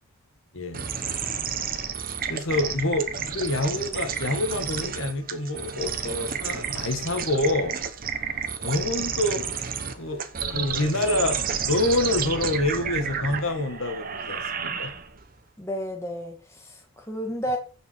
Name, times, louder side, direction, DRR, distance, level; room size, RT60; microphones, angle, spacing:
voice 1, 0.5-0.9 2.3-7.8 8.6-9.5 9.9-10.2 10.5-11.4 11.7-14.9, left 2 dB, 65° left, 1.5 m, -27 dB
sound 1, 0.7-15.3, right 7 dB, 40° right, 0.9 m, -31 dB
voice 2, 15.6-17.6, equal, 10° left, 2.1 m, -32 dB
15.5 x 5.3 x 4.5 m
head